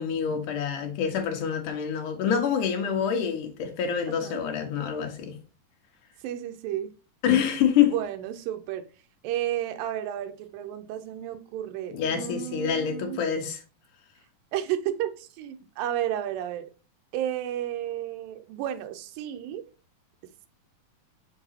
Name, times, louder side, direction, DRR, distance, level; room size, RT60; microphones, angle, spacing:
voice 1, 0.0-5.4 7.2-7.9 11.9-13.6, left 8 dB, 70° left, 2.7 m, -26 dB
voice 2, 4.1-4.4 6.2-6.9 7.8-8.9 9.2-13.2 14.5-16.7 17.1-19.6, right 11 dB, 85° right, 2.5 m, -32 dB
6.2 x 6.0 x 2.8 m
omnidirectional pair, 4.0 m